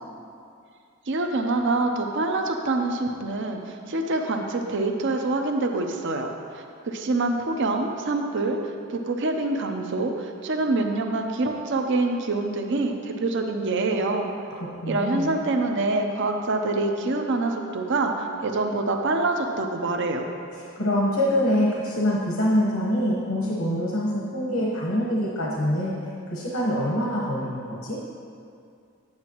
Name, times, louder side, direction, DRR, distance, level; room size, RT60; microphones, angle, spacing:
voice 1, 1.1-6.3 6.5-8.6 8.9-14.3 14.9-20.3, right 2 dB, 60° right, 4 dB, 0.6 m, -25 dB
voice 2, 14.6-15.4 20.5-25.9 26.3-28.0, equal, 80° left, -4 dB, 1.1 m, -25 dB
8.9 x 8.6 x 3.0 m, 2.4 s
head